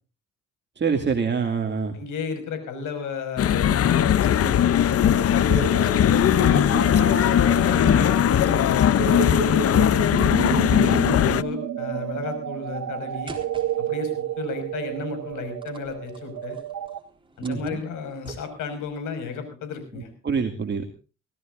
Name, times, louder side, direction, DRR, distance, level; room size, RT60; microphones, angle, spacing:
voice 1, 0.8-2.0 17.4-17.8 19.9-20.9, right 5 dB, 35° right, 4 dB, 2.2 m, -26 dB
voice 2, 1.9-8.5 8.9-10.0 10.4-13.3 13.8-16.6 17.4-20.1, left 4 dB, 85° left, 8 dB, 5.7 m, -33 dB
sound 1, 3.4-11.4, left 10 dB, 50° left, 0.7 m, -19 dB
sound 2, 5.1-17.0, right 10 dB, 75° right, 1.6 m, -31 dB
sound 3, 13.3-19.0, right 2 dB, 15° right, 4.0 m, -48 dB
24.0 x 17.5 x 2.6 m, 0.35 s
cardioid pair, 90°, 30 cm